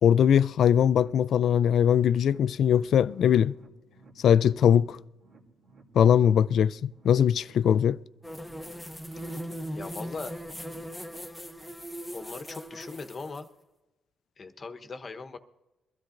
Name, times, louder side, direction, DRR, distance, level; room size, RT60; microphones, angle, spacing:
voice 1, 0.0-3.5 4.2-5.0 5.9-8.0, left 9 dB, 65° left, 0.3 m, -21 dB
sound 1, 0.8-10.1 10.4-10.5 10.9-11.0, right 3 dB, 65° right, 2.7 m, -57 dB
sound 2, 8.2-13.4, equal, 5° left, 0.8 m, -39 dB
voice 2, 9.7-10.4 12.1-13.5 14.4-15.4, left 4 dB, 35° left, 1.0 m, -39 dB
22.5 x 13.0 x 2.6 m
cardioid pair, 90°, 0 cm